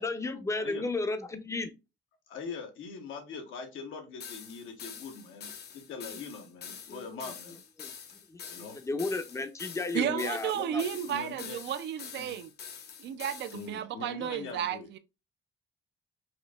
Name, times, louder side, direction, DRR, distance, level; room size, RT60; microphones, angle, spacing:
voice 1, 0.0-1.7 6.1-6.2 6.9-7.2 7.8-7.9 8.3-10.8, left 3 dB, 15° left, 0.5 m, -34 dB
voice 2, 0.6-0.9 2.3-7.6 8.5-8.8 9.9-10.3 11.0-11.6 12.2-12.4 13.5-14.9, left 4 dB, 85° left, 1.0 m, -42 dB
sound 1, 4.2-13.7, left 7 dB, 55° left, 0.6 m, -46 dB
voice 3, 9.9-12.5 13.0-15.0, right 10 dB, 60° right, 0.4 m, -33 dB
4.2 x 2.5 x 2.3 m
cardioid pair, 90°, 20 cm